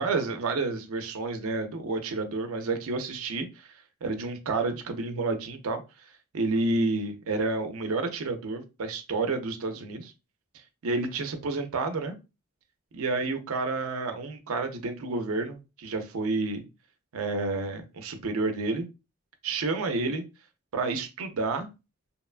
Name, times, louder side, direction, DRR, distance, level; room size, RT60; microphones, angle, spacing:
voice 1, 0.0-3.5 4.0-5.8 6.3-10.1 10.8-12.1 12.9-16.6 17.1-18.9 19.4-20.2 20.7-21.7, right 3 dB, 80° right, 0.5 m, -30 dB
2.9 x 2.2 x 2.3 m
head